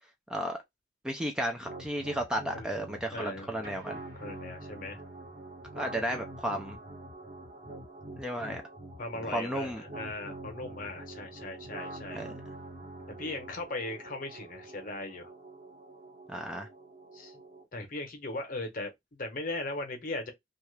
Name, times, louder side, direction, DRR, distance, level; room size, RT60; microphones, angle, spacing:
voice 1, 1.0-4.0 5.7-6.8 8.2-8.6 9.3-9.8 12.1-12.3 16.3-16.7, equal, 5° right, 0.4 m, -33 dB
sound 1, 1.6-17.6, right 2 dB, 50° right, 1.1 m, -46 dB
voice 2, 3.1-3.5 4.2-5.0 8.4-8.7 9.0-12.2 13.2-15.3 17.1-17.4 17.7-20.3, left 2 dB, 45° left, 0.8 m, -38 dB
2.7 x 2.3 x 3.1 m
head